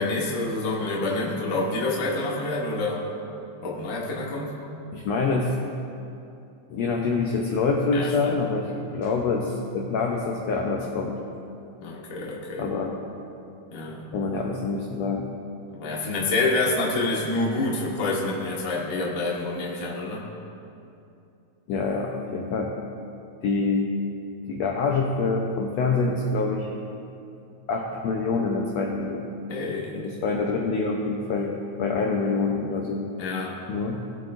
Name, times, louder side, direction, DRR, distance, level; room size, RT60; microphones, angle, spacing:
voice 1, 0.0-3.0 3.6-4.6 7.9-8.4 11.8-12.7 13.7-14.1 15.7-20.2 29.5-30.1 33.2-33.6, left 2 dB, 50° left, -4 dB, 1.0 m, -27 dB
voice 2, 4.9-5.6 6.7-11.2 12.6-13.0 14.1-15.3 21.7-22.8 23.4-23.9 24.5-26.7 27.7-29.2 29.9-33.1 33.7-34.0, left 4 dB, 80° left, 0 dB, 1.5 m, -26 dB
18.5 x 7.8 x 2.5 m, 2.7 s
omnidirectional pair, 3.8 m